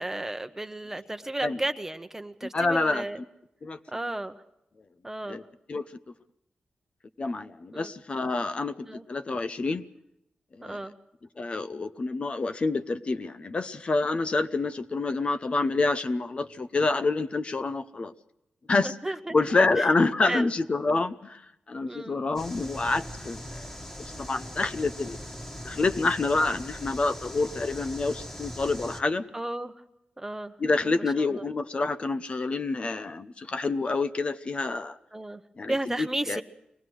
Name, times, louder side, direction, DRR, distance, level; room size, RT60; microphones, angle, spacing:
voice 1, 0.0-3.2 3.9-4.3 5.0-5.4 7.7-7.9 8.9-9.0 10.6-10.9 19.0-19.3 19.8-19.9 20.3-20.5 21.9-22.2 29.3-29.7 30.2-30.5 31.2-31.4 35.1-35.4 35.7-36.4, right 1 dB, 15° right, 8 dB, 1.0 m, -33 dB
voice 2, 2.5-3.1 3.6-3.8 5.3-5.4 5.7-5.8 7.2-9.8 10.5-10.9 11.4-18.1 18.7-23.7 24.2-25.2 25.6-29.2 30.6-35.0 35.6-36.4, left 3 dB, 40° left, 10 dB, 0.8 m, -27 dB
sound 1, 22.4-29.0, equal, 15° left, 1.7 m, -40 dB
23.5 x 18.0 x 6.3 m, 0.82 s
wide cardioid pair, 110°, 3 cm